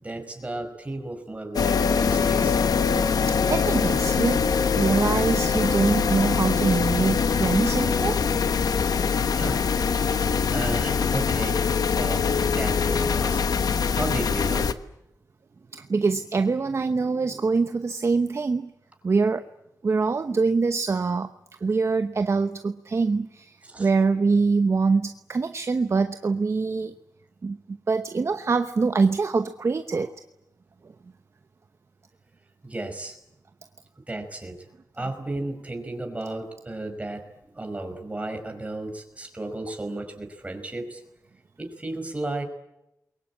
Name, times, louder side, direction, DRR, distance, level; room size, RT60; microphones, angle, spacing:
voice 1, 0.0-2.6 9.3-10.2 10.5-13.4 13.9-14.7 23.6-23.9 32.6-33.2 34.1-34.6 35.0-37.3 37.5-41.0 41.6-42.4, right 2 dB, 20° right, 5.4 m, -34 dB
sound 1, 1.5-14.7, left 6 dB, 75° left, 1.2 m, -23 dB
voice 2, 3.3-4.5 4.7-8.3 15.7-18.7 19.0-19.4 19.8-21.3 21.6-26.9 27.4-30.1, right 4 dB, 45° right, 1.0 m, -24 dB
29.0 x 23.0 x 8.7 m
wide cardioid pair, 100°, 7 cm